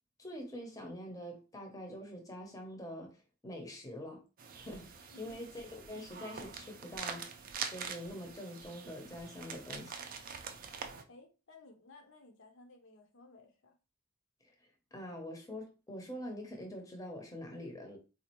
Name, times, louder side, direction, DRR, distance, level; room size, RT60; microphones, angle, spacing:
voice 1, 0.2-4.2 4.5-7.4 7.7-10.0 14.9-18.0, equal, 15° left, 0.6 m, -45 dB
sound 1, 4.4-11.0, right 6 dB, 40° right, 0.4 m, -44 dB
voice 2, 5.1-5.4 11.1-13.8, left 3 dB, 55° left, 0.6 m, -57 dB
4.1 x 2.4 x 2.9 m
head